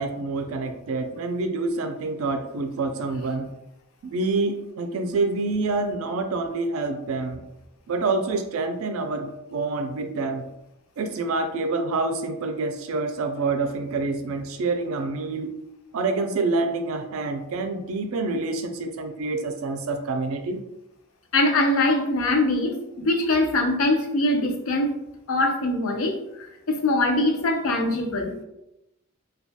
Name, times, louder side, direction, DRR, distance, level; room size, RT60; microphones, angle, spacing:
voice 1, 0.0-3.5 4.0-7.4 7.9-10.5 11.0-15.5 15.9-20.6, right 3 dB, 75° right, 6 dB, 0.4 m, -27 dB
voice 2, 21.3-25.0 25.3-28.4, left 2 dB, 70° left, 3 dB, 0.5 m, -23 dB
2.3 x 2.2 x 2.7 m, 0.86 s
head